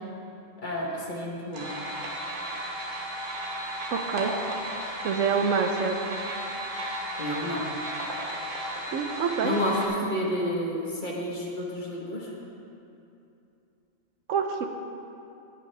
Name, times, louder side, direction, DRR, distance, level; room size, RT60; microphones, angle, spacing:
voice 1, 0.6-1.7 7.2-7.6 9.4-12.3, left 1 dB, 40° left, -2 dB, 1.3 m, -30 dB
sound 1, 1.5-9.9, right 1 dB, 45° right, 1.3 m, -34 dB
voice 2, 3.9-4.3 5.0-6.0 8.9-9.5 14.3-14.7, right 6 dB, 75° right, 5 dB, 1.0 m, -26 dB
16.5 x 6.1 x 3.3 m, 2.8 s
omnidirectional pair, 1.4 m